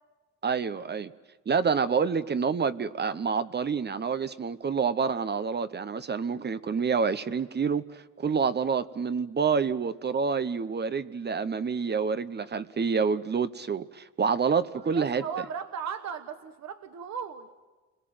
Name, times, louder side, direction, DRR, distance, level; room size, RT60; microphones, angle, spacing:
voice 1, 0.4-1.1 1.5-15.2, right 5 dB, 35° right, 13 dB, 0.9 m, -28 dB
voice 2, 14.8-17.5, right 7 dB, 65° right, 9 dB, 1.2 m, -36 dB
29.0 x 22.0 x 7.8 m, 1.2 s
cardioid pair, 90°, 30 cm